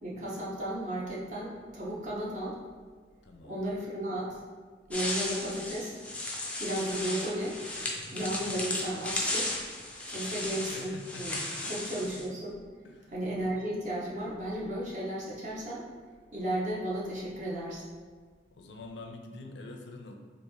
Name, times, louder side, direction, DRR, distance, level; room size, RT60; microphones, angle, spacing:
voice 1, 0.0-2.6 3.4-4.4 4.9-6.0 6.6-7.6 8.1-9.5 10.1-11.3 11.7-12.6 13.1-15.9 16.3-17.8, right 1 dB, 40° right, -5 dB, 0.7 m, -34 dB
voice 2, 3.2-3.7 10.7-11.8 12.8-13.1 18.5-20.1, left 2 dB, 75° left, 3 dB, 0.4 m, -46 dB
sound 1, 4.9-12.2, left 2 dB, 10° left, 0.4 m, -35 dB
3.2 x 2.5 x 3.5 m, 1.5 s
head